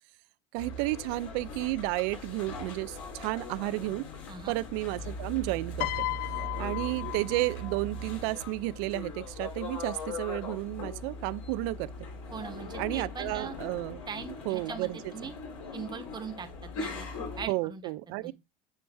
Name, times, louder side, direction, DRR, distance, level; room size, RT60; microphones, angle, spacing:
voice 1, 0.5-4.1 4.5-6.1 6.6-11.9 12.8-14.0 14.5-15.3 17.5-18.3, right 20 dB, 70° right, 0.4 m, -32 dB
sound 1, 0.6-17.4, left 2 dB, 85° left, 2.9 m, -40 dB
voice 2, 4.3-4.6 12.3-13.5 14.1-15.3 15.7-17.1 17.4-17.9 18.2-18.3, right 6 dB, 25° right, 1.2 m, -41 dB
Piano, 5.8-8.2 9.2-9.5, left 19 dB, 60° left, 0.6 m, -35 dB
8.9 x 3.2 x 3.4 m
supercardioid pair, 100°, 16 cm